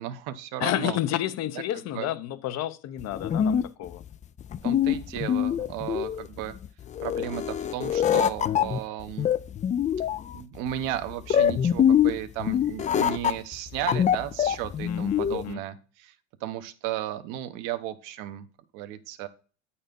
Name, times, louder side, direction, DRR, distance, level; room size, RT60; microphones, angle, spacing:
voice 1, 0.0-1.0 1.5-1.6 1.9-2.1 4.6-6.5 7.0-9.3 10.3-16.1 16.4-18.5 18.7-19.3, right 12 dB, 70° right, 1.0 m, -34 dB
voice 2, 0.6-4.0 14.9-15.6, left 12 dB, 50° left, 0.8 m, -30 dB
sound 1, 3.0-15.5, left 9 dB, 25° left, 0.3 m, -25 dB
8.9 x 4.2 x 5.2 m
supercardioid pair, 105°, 33 cm